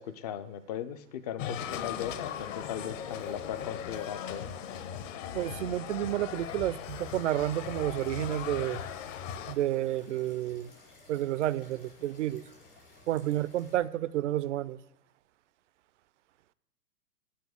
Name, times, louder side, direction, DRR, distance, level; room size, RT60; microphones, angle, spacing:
voice 1, 0.0-4.5, left 10 dB, 25° left, 13 dB, 0.4 m, -38 dB
sound 1, 1.4-9.5, left 9 dB, 50° left, 1.0 m, -38 dB
voice 2, 5.3-8.8 9.5-10.7 11.1-12.4 13.1-14.8, right 13 dB, 50° right, 19 dB, 0.4 m, -30 dB
sound 2, 6.8-13.8, left 3 dB, 70° left, 4.9 m, -56 dB
9.4 x 5.8 x 8.2 m, 0.85 s
hypercardioid pair, 110°, 48 cm